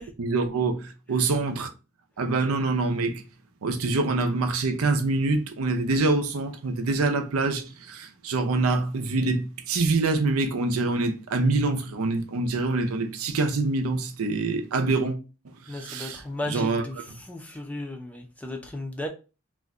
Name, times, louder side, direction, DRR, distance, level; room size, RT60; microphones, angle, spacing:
voice 1, 0.2-1.7 2.2-3.2 3.6-15.2 15.7-16.8, right 3 dB, 90° right, 0.5 m, -25 dB
voice 2, 15.7-19.1, left 1 dB, 5° left, 0.4 m, -35 dB
2.5 x 2.2 x 3.6 m
head